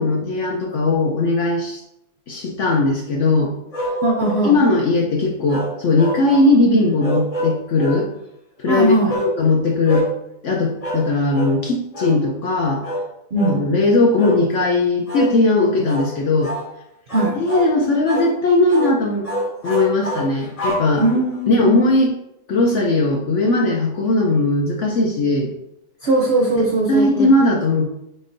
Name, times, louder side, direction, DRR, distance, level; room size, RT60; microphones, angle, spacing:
voice 1, 0.0-1.8 2.3-3.5 4.4-8.1 8.6-8.9 9.3-10.1 10.4-12.8 13.5-16.5 17.3-19.3 19.6-21.0 21.5-22.1 22.5-25.5 26.5-27.8, left 2 dB, 65° left, -1 dB, 0.8 m, -18 dB
sound 1, 3.7-4.5 5.5-6.5 7.0-8.0 9.1-9.3 9.8-10.1 10.8-11.1 11.3-11.6 11.9-12.2 12.8-13.1 13.3-13.6 14.2-14.4 15.1-15.3 15.8-16.1 16.4-16.7 17.1-17.7 18.1-18.3 18.7-18.9 19.2-21.4, equal, 35° left, 0.6 m, -26 dB
voice 2, 4.0-4.5 8.7-9.1 13.3-13.6 17.1-17.4 21.0-21.7 26.0-27.3, right 2 dB, 70° right, -1 dB, 0.6 m, -19 dB
5.1 x 3.8 x 2.5 m, 0.81 s
omnidirectional pair, 1.8 m